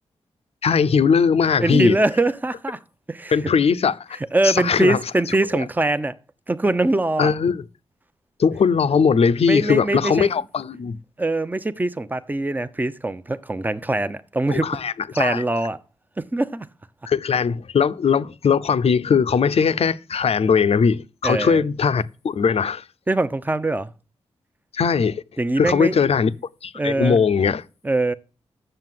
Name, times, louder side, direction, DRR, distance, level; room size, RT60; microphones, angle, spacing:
voice 1, 0.6-2.0 3.3-4.2 4.4-5.0 7.2-7.6 8.4-11.0 14.5-15.4 17.1-22.8 24.7-25.2 25.6-26.3 26.6-27.6, left 6 dB, 65° left, 0.7 m, -20 dB
voice 2, 1.6-2.8 3.1-3.4 4.3-6.2 6.5-7.3 9.4-10.3 11.2-14.8 15.1-15.8 16.2-16.7 21.2-21.6 23.1-23.9 25.4-26.0 26.8-27.2 27.8-28.1, right 2 dB, 15° right, 0.8 m, -22 dB
7.7 x 6.8 x 7.6 m
cardioid pair, 55°, 11 cm